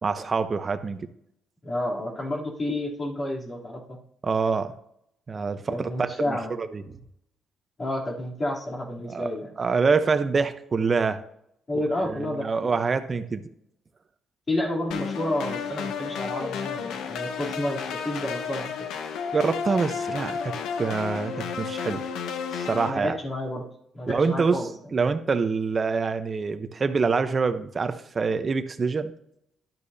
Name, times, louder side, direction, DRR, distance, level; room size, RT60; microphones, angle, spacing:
voice 1, 0.0-1.1 4.2-4.7 5.3-6.8 9.0-9.3 9.6-11.2 12.0-13.5 19.3-22.0 22.5-23.2 24.1-24.6 24.9-29.1, right 4 dB, 35° right, 10 dB, 0.9 m, -26 dB
voice 2, 1.6-4.0 5.7-6.6 7.8-9.5 11.7-12.8 14.5-18.9 22.9-23.7 23.9-24.7, left 1 dB, 35° left, -4 dB, 3.2 m, -30 dB
sound 1, 14.9-22.9, left 6 dB, 85° left, 0.8 m, -32 dB
12.0 x 9.6 x 2.8 m, 0.73 s
cardioid pair, 90°, 0 cm